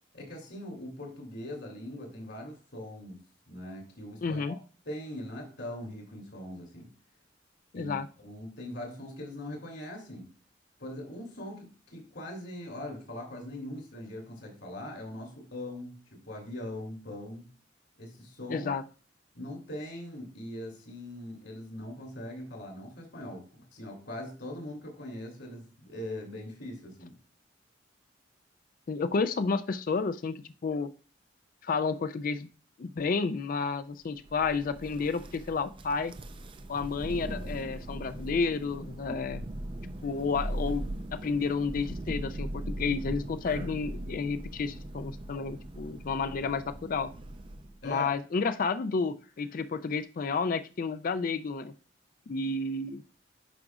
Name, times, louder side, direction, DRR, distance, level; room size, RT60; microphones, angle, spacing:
voice 1, 0.1-3.2 3.5-4.6 4.8-6.9 7.7-10.3 10.8-17.5 18.0-18.7 19.3-27.1 47.8-48.1, left 1 dB, 70° left, 2 dB, 2.9 m, -41 dB
voice 2, 4.2-4.6 7.7-8.1 18.5-18.8 28.9-30.9 31.6-32.5 32.8-36.1 36.7-39.4 40.0-47.1 47.8-51.7 52.3-53.0, left 4 dB, 50° left, 12 dB, 0.4 m, -31 dB
Thunder, 34.2-47.9, right 1 dB, 25° right, 0.4 m, -39 dB
10.5 x 5.0 x 2.4 m, 0.37 s
head